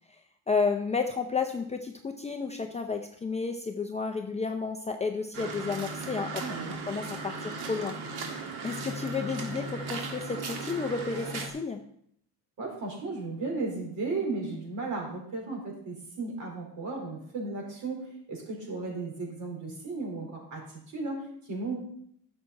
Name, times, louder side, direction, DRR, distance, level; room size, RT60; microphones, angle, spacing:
voice 1, 0.5-6.4 6.9-7.9 8.6-11.8, left 4 dB, 15° left, 5 dB, 0.5 m, -31 dB
sound 1, 5.3-11.5, right 3 dB, 65° right, 1.9 m, -37 dB
voice 2, 6.3-6.7 12.6-21.7, right 3 dB, 45° right, -1 dB, 4.4 m, -35 dB
11.0 x 7.2 x 4.2 m, 0.68 s
cardioid pair, 125°, 41 cm